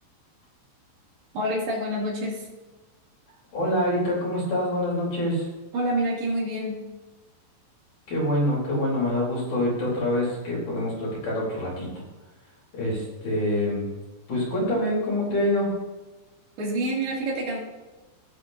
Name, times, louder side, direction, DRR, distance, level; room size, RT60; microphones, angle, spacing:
voice 1, 1.3-2.5 5.7-6.9 16.6-17.6, right 1 dB, 70° right, -4 dB, 4.6 m, -27 dB
voice 2, 3.5-5.5 8.1-11.9 12.7-13.9 14.3-15.7, left 1 dB, 45° left, -5 dB, 4.9 m, -25 dB
18.0 x 7.6 x 2.7 m, 1.2 s
omnidirectional pair, 4.9 m